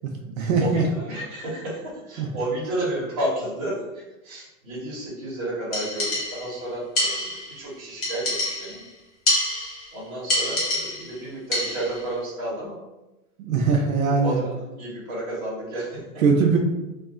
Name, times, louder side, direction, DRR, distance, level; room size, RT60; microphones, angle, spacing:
voice 1, 0.0-0.8 2.2-2.3 13.4-14.4 16.2-16.6, right 5 dB, 70° right, 1 dB, 0.6 m, -21 dB
voice 2, 0.6-8.8 9.9-12.8 13.8-16.2, right 1 dB, 25° right, -7 dB, 0.9 m, -32 dB
sound 1, 5.7-6.6 7.0-7.6 8.0-8.9 9.3-9.9 10.3-11.2 11.5-12.0, left 1 dB, 40° left, 1.1 m, -26 dB
2.4 x 2.3 x 3.6 m, 1.0 s
supercardioid pair, 180°, 42 cm